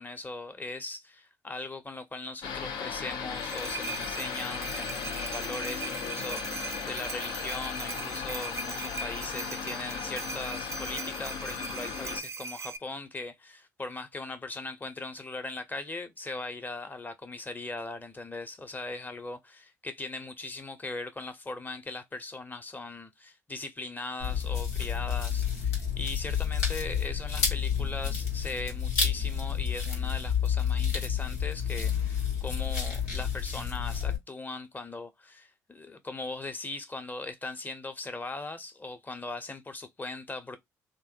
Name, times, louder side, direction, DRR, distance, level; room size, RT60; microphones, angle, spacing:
voice 1, 0.0-40.6, left 2 dB, 20° left, 0.9 m, -39 dB
sound 1, 2.4-12.2, left 7 dB, 60° left, 0.6 m, -37 dB
sound 2, 3.1-12.8, right 4 dB, 35° right, 0.4 m, -39 dB
sound 3, 24.2-34.2, left 7 dB, 85° left, 0.9 m, -30 dB
3.0 x 2.2 x 2.7 m
hypercardioid pair, 50°, 8 cm